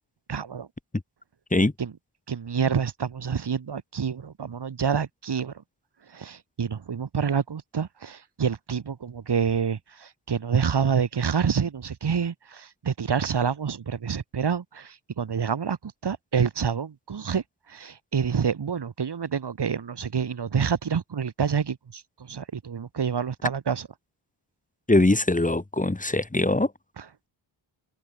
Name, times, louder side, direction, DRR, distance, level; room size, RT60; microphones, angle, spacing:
voice 1, 0.3-0.7 1.8-1.9 2.3-5.5 6.1-23.9, right 6 dB, 55° right, 3.2 m, -27 dB
voice 2, 24.9-26.7, left 2 dB, 15° left, 3.4 m, -22 dB
cardioid pair, 85°, 47 cm